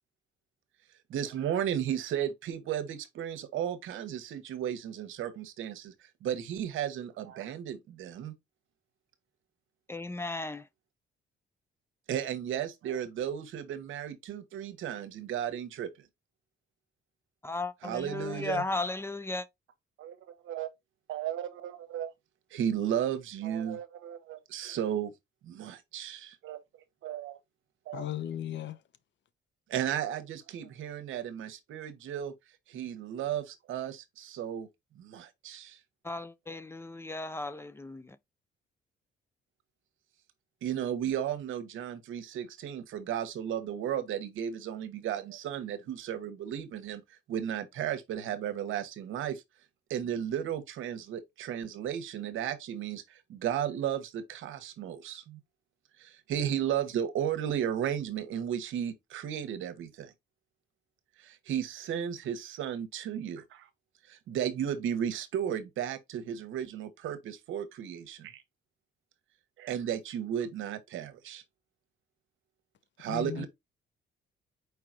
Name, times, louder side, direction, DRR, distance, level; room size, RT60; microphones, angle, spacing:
voice 1, 1.1-8.3 12.1-16.1 17.8-18.6 20.0-20.7 21.1-22.1 22.5-25.1 25.4-26.6 27.0-27.4 27.9-28.0 29.7-32.3 32.7-34.7 34.9-35.8 40.6-49.4 49.9-55.4 56.0-60.1 61.2-63.7 64.1-68.4 69.6-71.4 73.0-73.5, right 9 dB, 80° right, 0.9 m, -34 dB
voice 2, 9.9-10.6 17.4-19.5 36.0-38.2, left 2 dB, 10° left, 0.4 m, -35 dB
voice 3, 27.9-28.8 73.1-73.5, left 11 dB, 65° left, 0.7 m, -36 dB
4.8 x 4.5 x 2.4 m
cardioid pair, 90°, 20 cm